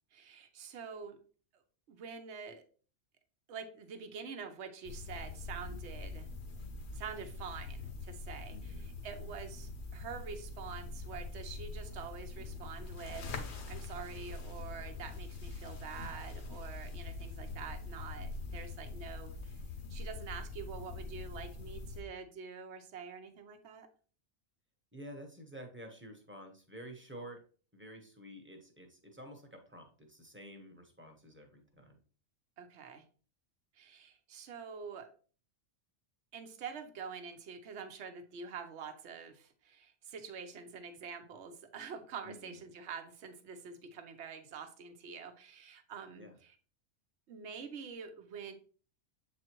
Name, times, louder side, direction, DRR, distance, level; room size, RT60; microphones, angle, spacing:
voice 1, 0.1-1.2 1.9-2.6 3.5-6.3 6.9-19.6 19.9-23.9 32.6-33.0 33.7-35.1 36.3-46.5 47.3-48.5, right 6 dB, 60° right, 6 dB, 1.1 m, -46 dB
Quintin Cloth Pass Jacket, 4.9-22.0, left 3 dB, 60° left, 1.1 m, -44 dB
voice 2, 8.5-8.9 24.9-27.4 27.7-32.0 42.2-42.6 46.1-46.3, equal, 10° right, 3 dB, 0.9 m, -50 dB
7.6 x 4.1 x 3.0 m, 0.41 s
omnidirectional pair, 1.3 m